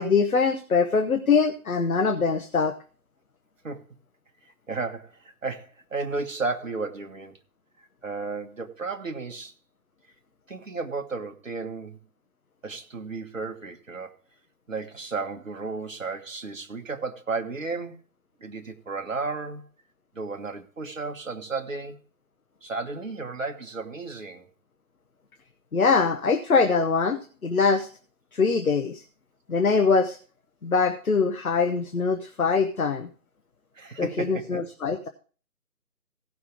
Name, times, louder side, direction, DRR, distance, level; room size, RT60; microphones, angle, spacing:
voice 1, 0.0-2.7 25.7-27.9 28.3-29.0 29.5-30.2 30.6-33.1 34.0-35.1, left 5 dB, 65° left, 6 dB, 1.1 m, -23 dB
voice 2, 4.7-7.4 7.8-9.5 10.5-12.0 12.6-14.1 14.7-18.0 18.4-19.6 20.1-22.0 22.6-24.5 33.7-34.6, right 4 dB, 55° right, 4 dB, 1.5 m, -33 dB
16.0 x 6.0 x 4.9 m, 0.39 s
figure-of-eight pair, 165°, 47 cm